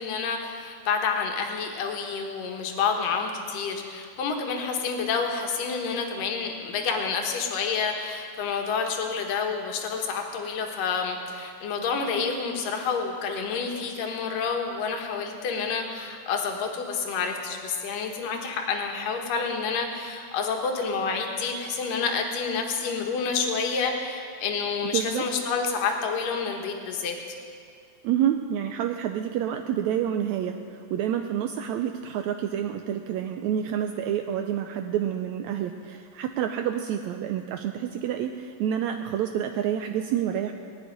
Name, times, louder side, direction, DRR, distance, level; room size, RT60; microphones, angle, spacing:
voice 1, 0.0-27.2, left 5 dB, 75° left, 3 dB, 3.0 m, -29 dB
voice 2, 24.9-25.2 28.0-40.5, right 10 dB, 85° right, 5 dB, 1.6 m, -28 dB
19.5 x 6.7 x 9.9 m, 2.3 s
omnidirectional pair, 3.9 m